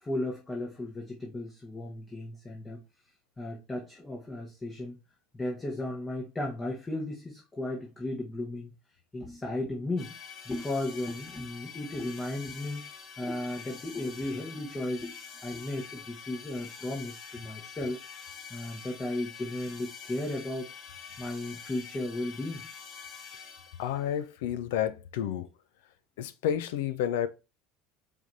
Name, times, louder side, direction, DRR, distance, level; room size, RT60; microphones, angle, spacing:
voice 1, 0.0-2.8 3.4-5.0 5.3-8.7 9.1-10.1 10.4-12.8 13.2-15.1 15.4-18.0 18.5-20.7 21.2-22.6, left 2 dB, 20° left, 1.1 m, -35 dB
sound 1, 10.0-24.1, left 6 dB, 50° left, 1.7 m, -46 dB
voice 2, 23.8-25.5 26.2-27.3, left 10 dB, 70° left, 0.4 m, -30 dB
4.8 x 3.3 x 2.7 m
hypercardioid pair, 70°, 0 cm